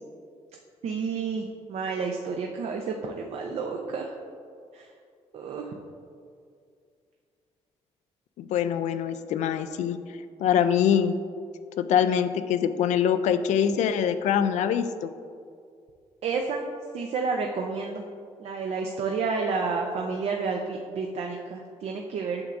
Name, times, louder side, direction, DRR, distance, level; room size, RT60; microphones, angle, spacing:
voice 1, 0.8-4.1 4.7-4.8 5.3-5.7 16.2-16.6 16.9-18.0 18.4-22.4, right 4 dB, 65° right, 2 dB, 0.6 m, -30 dB
voice 2, 8.4-10.0 10.4-11.1 11.8-15.1, left 8 dB, 80° left, 10 dB, 0.4 m, -24 dB
8.7 x 5.9 x 2.5 m, 2.3 s
cardioid pair, 105°, 12 cm